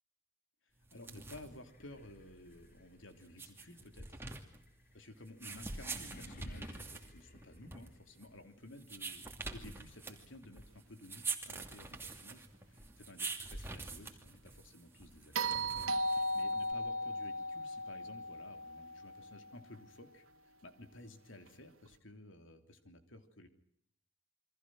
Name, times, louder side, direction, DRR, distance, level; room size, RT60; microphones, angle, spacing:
sound 1, 0.8-16.7, right 4 dB, 10° right, 2.6 m, -46 dB
voice 1, 0.9-4.3 4.9-15.7 15.9-23.5, left 1 dB, 70° left, 7 dB, 3.3 m, -54 dB
sound 2, 1.6-8.5, left 1 dB, 45° left, 2.3 m, -58 dB
sound 3, 15.3-19.6 21.9-22.0, right 1 dB, 90° right, 2.3 m, -36 dB
28.5 x 24.0 x 6.3 m, 0.71 s
head